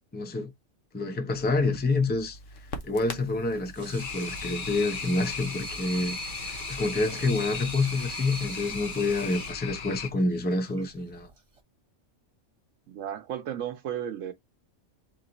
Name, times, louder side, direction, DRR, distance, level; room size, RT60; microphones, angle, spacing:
voice 1, 0.1-0.5 0.9-2.4 2.8-11.3, left 3 dB, 10° left, 0.7 m, -28 dB
Crackle, 1.3-9.5, left 1 dB, 75° left, 1.4 m, -46 dB
Water tap faucet / Sink (filling or washing), 3.5-11.6, right 3 dB, 30° right, 1.2 m, -42 dB
sound 1, 4.0-10.1, left 7 dB, 50° left, 0.8 m, -37 dB
voice 2, 12.9-14.3, right 9 dB, 80° right, 1.0 m, -34 dB
4.0 x 3.0 x 4.0 m
omnidirectional pair, 1.3 m